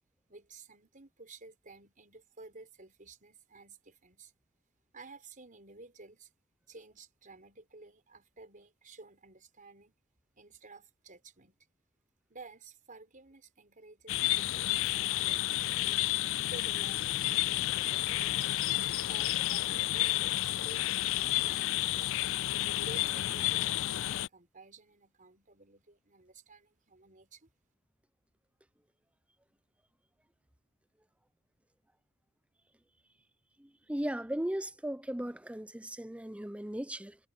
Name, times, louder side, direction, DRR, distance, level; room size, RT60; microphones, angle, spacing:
voice 1, 0.3-4.3 4.9-6.3 6.7-9.9 10.4-11.6 12.3-16.0 16.5-18.6 19.1-22.1 22.8-27.5, right 3 dB, 40° right, 5.4 m, -53 dB
sound 1, 14.1-24.3, left 15 dB, 65° left, 0.4 m, -31 dB
voice 2, 33.6-37.2, right 1 dB, 5° right, 0.7 m, -37 dB
head